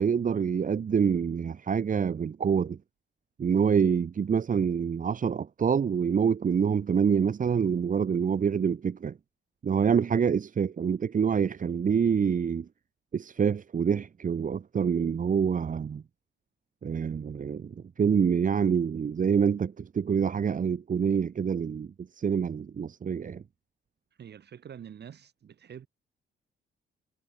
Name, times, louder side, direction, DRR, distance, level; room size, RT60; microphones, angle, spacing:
voice 1, 0.0-2.8 3.4-9.1 9.6-12.7 13.1-16.0 16.8-21.9 22.2-23.4, right 7 dB, 40° right, 1.5 m, -26 dB
voice 2, 24.2-25.9, right 8 dB, 55° right, 7.9 m, -46 dB
cardioid pair, 90°, 20 cm